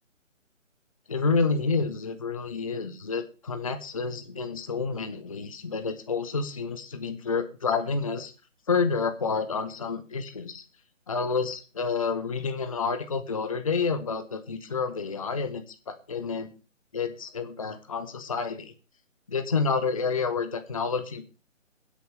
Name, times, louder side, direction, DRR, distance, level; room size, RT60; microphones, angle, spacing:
voice 1, 1.1-8.3 8.7-10.6 11.1-16.5 16.9-18.7 19.3-21.2, left 5 dB, 25° left, 9 dB, 0.7 m, -29 dB
24.0 x 8.2 x 3.3 m, 0.33 s
figure-of-eight pair, 150°, 38 cm